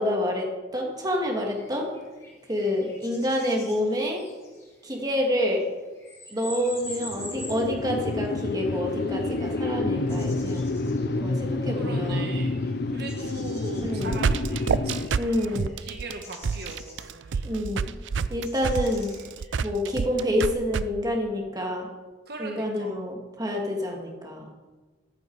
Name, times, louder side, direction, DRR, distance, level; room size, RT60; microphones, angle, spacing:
voice 1, 0.0-1.9 2.5-4.2 4.8-5.7 6.3-10.7 11.2-12.3 13.8-14.2 15.1-15.7 17.4-18.0 18.3-19.1 19.6-21.9 22.4-24.5, left 1 dB, 20° right, 0 dB, 2.1 m, -28 dB
sound 1, 1.0-19.7, left 1 dB, 15° left, 2.8 m, -47 dB
sound 2, 6.8-15.1, left 2 dB, 60° left, 0.7 m, -29 dB
voice 2, 11.7-12.6 12.9-15.1 15.8-17.5 22.3-23.0, right 2 dB, 60° right, 3 dB, 1.2 m, -39 dB
sound 3, 13.8-20.8, right 5 dB, 85° right, 0.4 m, -27 dB
14.5 x 8.3 x 4.7 m, 1.2 s
head